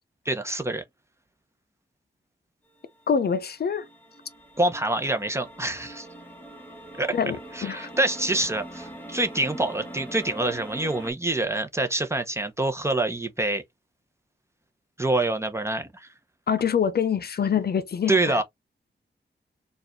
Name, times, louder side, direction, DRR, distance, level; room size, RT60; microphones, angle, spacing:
voice 1, 0.3-0.8 4.6-6.1 7.0-7.2 7.5-13.6 15.0-16.1 18.1-18.4, right 2 dB, 15° right, 0.7 m, -26 dB
sound 1, 2.8-11.1, right 1 dB, 10° left, 1.3 m, -42 dB
voice 2, 3.1-3.9 7.1-7.4 7.6-7.9 16.5-18.4, left 7 dB, 55° left, 0.6 m, -25 dB
4.7 x 2.4 x 3.0 m
wide cardioid pair, 155°, 19 cm